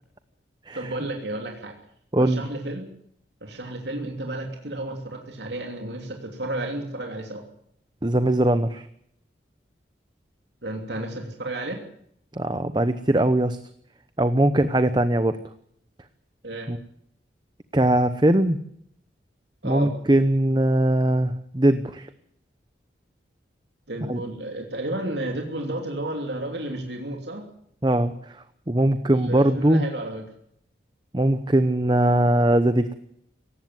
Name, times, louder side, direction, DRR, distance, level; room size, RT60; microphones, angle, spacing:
voice 1, 0.7-1.7 2.2-2.9 3.4-7.4 10.6-11.8 16.4-16.7 19.6-19.9 23.9-27.5 29.1-30.2, right 1 dB, 70° right, 2 dB, 3.0 m, -32 dB
voice 2, 2.1-2.4 8.0-8.9 12.3-13.6 14.2-15.4 16.7-16.8 17.7-18.6 19.6-22.1 24.1-24.2 27.8-29.8 31.1-32.9, right 1 dB, 25° right, 11 dB, 0.8 m, -21 dB
18.5 x 15.5 x 9.4 m, 0.70 s
head